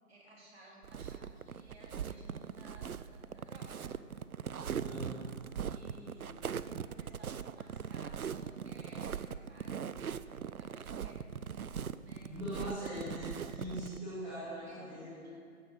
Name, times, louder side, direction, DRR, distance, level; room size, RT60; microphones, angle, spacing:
voice 1, 0.1-3.9 5.7-9.8 10.6-11.3 12.0-12.7 13.4-13.7 14.6-15.3, right 1 dB, 45° right, -4 dB, 3.5 m, -57 dB
sound 1, 0.8-14.0, right 7 dB, 75° right, 0.6 m, -40 dB
voice 2, 4.8-5.2 12.3-15.3, equal, 5° right, -14 dB, 1.9 m, -41 dB
15.5 x 5.7 x 8.0 m, 2.2 s
figure-of-eight pair, 150°, 44 cm